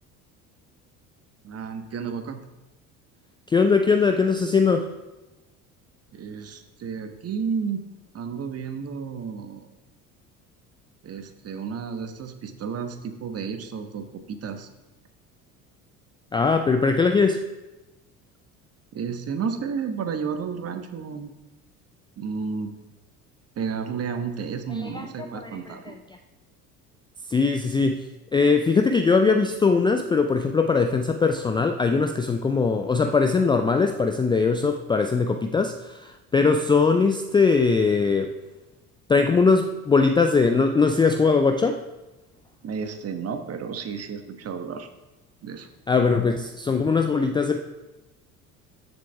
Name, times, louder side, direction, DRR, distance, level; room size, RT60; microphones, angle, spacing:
voice 1, 1.4-2.4 6.1-7.9 8.1-9.7 11.0-14.7 18.9-21.3 22.2-22.7 23.6-26.0 42.6-44.9 45.4-45.7, right 6 dB, 30° right, 7 dB, 1.2 m, -32 dB
voice 2, 3.5-4.9 16.3-17.4 24.8-25.0 25.3-25.9 27.3-28.1 28.3-38.3 39.1-41.8 45.9-47.6, left 4 dB, 10° left, 5 dB, 0.4 m, -21 dB
13.0 x 7.5 x 3.5 m, 1.1 s
figure-of-eight pair, 60°, 45 cm